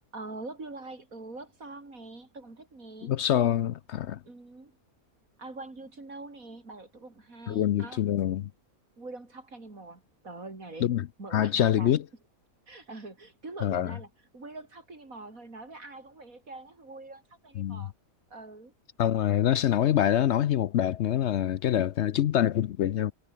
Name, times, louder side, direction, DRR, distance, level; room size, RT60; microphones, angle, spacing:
voice 1, 0.1-3.1 4.2-4.8 5.4-8.0 9.0-11.9 12.7-17.9 18.3-18.7, right 2 dB, 70° right, 5.0 m, -44 dB
voice 2, 3.0-4.2 7.5-8.5 10.8-12.0 13.6-14.0 17.6-17.9 19.0-23.1, left 11 dB, 60° left, 0.8 m, -25 dB
omnidirectional pair, 1.5 m